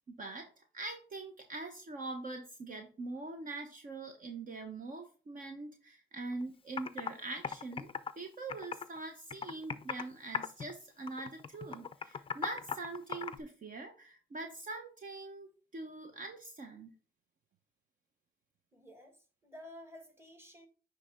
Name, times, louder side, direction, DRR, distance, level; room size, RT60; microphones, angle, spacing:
voice 1, 0.1-16.9, right 3 dB, 45° right, 1.0 m, -43 dB
Computer keyboard, 6.3-6.4 6.8-7.1 7.4-9.0 9.3-10.1 10.3-10.7 11.1-13.4, left 6 dB, 25° left, 0.5 m, -38 dB
voice 2, 18.7-20.7, left 1 dB, 10° right, 1.8 m, -52 dB
9.7 x 3.5 x 3.6 m
cardioid pair, 90°, 20 cm